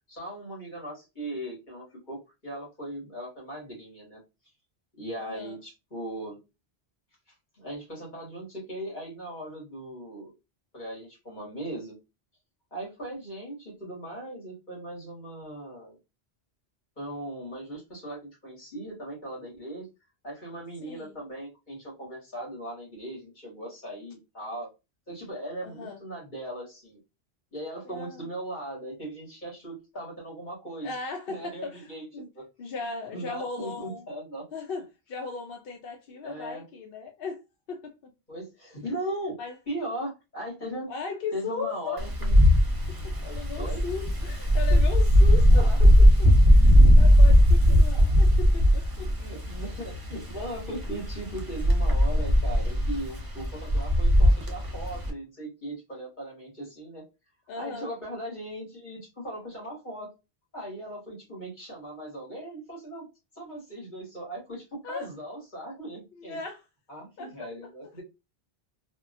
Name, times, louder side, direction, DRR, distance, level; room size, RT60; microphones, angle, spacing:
voice 1, 0.1-4.2 5.0-6.4 7.5-10.3 10.7-12.0 12.7-16.0 17.0-19.9 20.2-24.7 25.1-27.0 27.5-31.0 31.3-32.1 32.3-32.4 33.1-34.5 36.2-36.6 38.3-39.4 39.7-40.9 41.3-42.4 43.6-43.9 44.7-44.8 45.5-45.9 49.0-57.0 57.5-60.1 60.5-63.1 63.4-66.4 66.9-68.0, right 1 dB, 50° left, 1.8 m, -38 dB
voice 2, 5.2-5.6 20.8-21.2 25.6-26.0 27.9-28.3 30.8-32.3 32.6-34.1 34.5-37.4 37.7-37.9 39.4-39.5 40.9-42.0 42.9-45.9 46.6-49.1 57.5-57.9 64.8-65.1 66.2-66.6 67.2-67.5, left 4 dB, 65° left, 0.7 m, -37 dB
Wind, 42.0-55.1, equal, 25° right, 0.7 m, -19 dB
3.5 x 2.1 x 2.5 m
omnidirectional pair, 1.1 m